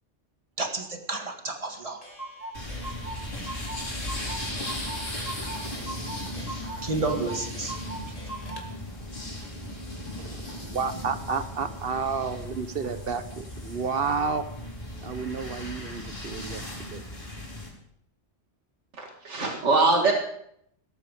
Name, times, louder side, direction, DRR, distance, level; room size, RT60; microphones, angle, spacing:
voice 1, 0.6-2.0 6.8-7.8 8.1-8.2, right 3 dB, 30° right, 5 dB, 1.8 m, -31 dB
Clock, 1.5-1.6 1.7-1.8 2.0-8.7, right 2 dB, 30° left, 2.6 m, -40 dB
sound 1, 2.5-17.7, left 1 dB, 50° left, 4.9 m, -37 dB
voice 2, 10.2-14.5 15.0-17.0, right 5 dB, 55° right, 11 dB, 1.3 m, -31 dB
voice 3, 19.0-20.1, right 3 dB, 85° right, 1 dB, 2.3 m, -23 dB
17.5 x 13.5 x 4.9 m, 0.70 s
omnidirectional pair, 1.2 m